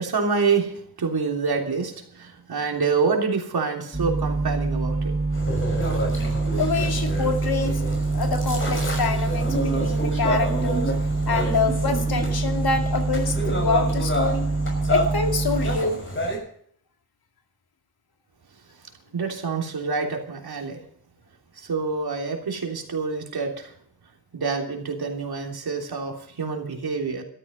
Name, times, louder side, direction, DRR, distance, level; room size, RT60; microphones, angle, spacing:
voice 1, 0.0-5.2 19.1-20.8 21.6-23.7 24.3-27.2, right 5 dB, 75° right, 2 dB, 3.3 m, -27 dB
sound 1, 3.9-15.8, right 3 dB, 15° right, 4.8 m, -25 dB
sound 2, 5.3-16.4, right 1 dB, 30° left, 6.1 m, -29 dB
voice 2, 6.5-7.8 8.1-10.9 11.3-14.5 14.9-16.0, left 4 dB, 70° left, 5 dB, 2.3 m, -26 dB
13.5 x 13.0 x 5.5 m, 0.62 s
wide cardioid pair, 130°, 38 cm